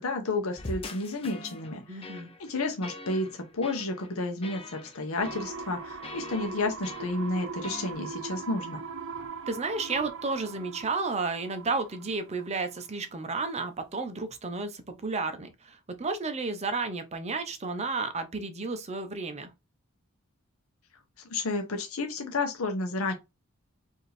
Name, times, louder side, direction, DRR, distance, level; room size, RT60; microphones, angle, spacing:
voice 1, 0.0-8.8 21.3-23.1, left 2 dB, 80° left, 0.8 m, -31 dB
sound 1, 0.6-7.9, left 2 dB, 25° left, 0.7 m, -44 dB
voice 2, 1.9-2.3 9.5-19.5, right 3 dB, 30° right, 0.7 m, -32 dB
sound 2, 5.2-12.9 13.2-13.3, right 4 dB, 65° right, 0.7 m, -40 dB
4.6 x 2.7 x 3.3 m
head